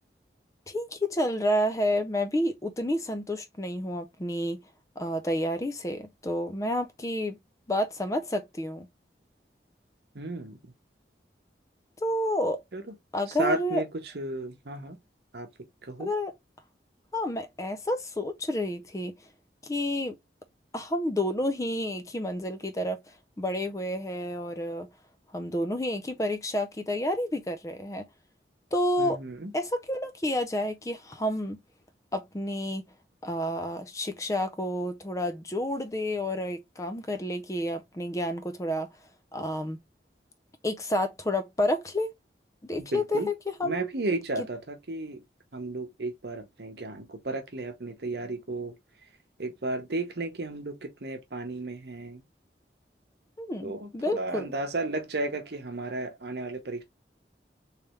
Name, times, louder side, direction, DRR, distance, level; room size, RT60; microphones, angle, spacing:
voice 1, 0.7-4.6 5.0-7.4 7.7-8.9 12.0-12.6 13.1-13.8 16.0-16.3 17.1-19.1 19.6-20.2 20.7-24.9 25.3-28.1 28.7-29.2 29.5-31.6 32.1-32.8 33.2-38.9 39.3-39.8 40.6-42.1 42.6-43.9 44.4-44.5 53.4-54.5, left 1 dB, 20° left, 0.4 m, -30 dB
voice 2, 10.1-10.6 12.7-12.9 13.3-13.9 14.1-15.0 15.3-15.5 15.8-16.1 29.0-29.5 42.9-43.3 43.6-45.2 45.5-48.8 49.4-52.2 53.6-56.8, right 2 dB, 70° right, 0.9 m, -33 dB
3.3 x 3.3 x 3.0 m
head